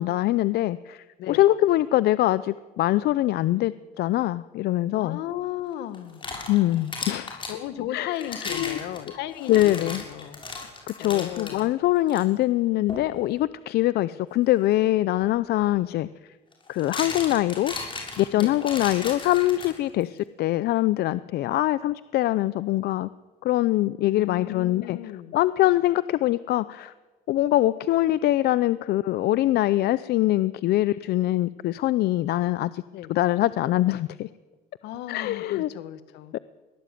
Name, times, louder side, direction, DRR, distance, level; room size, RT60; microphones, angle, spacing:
voice 1, 0.0-5.2 6.5-7.4 7.9-8.8 9.5-10.0 10.9-16.1 16.7-17.8 18.2-23.1 23.4-25.0 25.3-26.9 27.3-32.8 33.1-34.3 35.1-35.7 36.3-36.4, left 15 dB, 70° left, 16 dB, 0.7 m, -23 dB
voice 2, 4.9-6.3 7.5-10.4 11.0-11.7 18.3-18.6 24.1-25.4 32.9-33.2 34.8-36.4, left 12 dB, 85° left, 12 dB, 1.8 m, -35 dB
sound 1, 5.9-7.6 8.2-11.6 12.1-12.2 12.9-13.1 15.2-15.3 16.5-20.0, left 3 dB, 30° left, 6.9 m, -36 dB
22.5 x 18.0 x 9.3 m, 1.2 s
cardioid pair, 110°, 17 cm